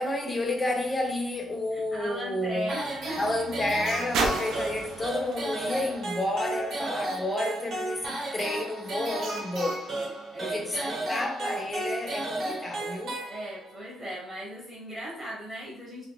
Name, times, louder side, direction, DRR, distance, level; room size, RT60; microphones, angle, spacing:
voice 1, 0.0-2.8 3.2-9.8 10.4-13.1, left 1 dB, 15° left, 0.5 m, -30 dB
sound 1, 0.6-7.1 7.9-8.0, right 4 dB, 70° right, 0.5 m, -36 dB
voice 2, 1.7-3.3 9.9-11.1 13.3-16.0, equal, 15° right, 0.8 m, -38 dB
sound 2, 2.7-13.8, right 2 dB, 45° right, 0.8 m, -34 dB
2.5 x 2.4 x 3.6 m
cardioid pair, 175°, 0 cm